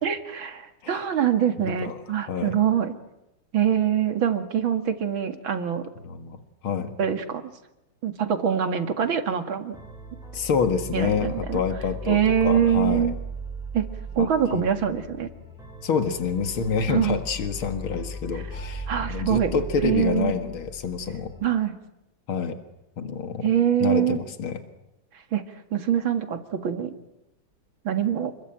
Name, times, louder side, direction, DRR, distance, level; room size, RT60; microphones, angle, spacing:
voice 1, 0.0-2.9 3.5-5.8 7.0-7.5 8.0-9.8 10.9-11.6 12.1-13.1 13.7-13.9 14.2-15.3 16.9-17.2 18.9-19.5 19.8-20.3 21.4-21.8 23.4-24.2 25.3-25.4 25.7-27.0 27.8-28.3, right 9 dB, 70° right, 7 dB, 2.7 m, -24 dB
voice 2, 2.3-2.6 6.0-6.9 10.3-13.1 14.2-14.7 15.8-21.3 22.3-22.6 23.0-23.5 23.8-24.6, left 6 dB, 80° left, 7 dB, 2.6 m, -27 dB
sound 1, 9.7-21.5, right 1 dB, ahead, 6.3 m, -37 dB
29.0 x 22.0 x 9.0 m, 0.91 s
omnidirectional pair, 2.3 m